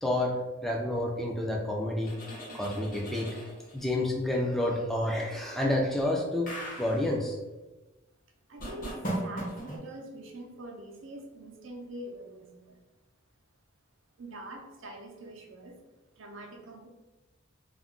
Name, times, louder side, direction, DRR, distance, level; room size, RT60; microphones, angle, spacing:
voice 1, 0.0-2.1 2.5-3.3 3.7-6.5 6.8-7.4, left 1 dB, ahead, -1 dB, 0.3 m, -29 dB
sound 1, 2.0-3.9 6.5-7.1 8.6-9.8, right 1 dB, 40° left, 0.8 m, -38 dB
voice 2, 8.5-8.9 9.2-12.8 14.2-15.8 16.2-16.9, right 1 dB, 70° right, 1 dB, 0.5 m, -44 dB
2.4 x 2.2 x 3.5 m, 1.1 s
head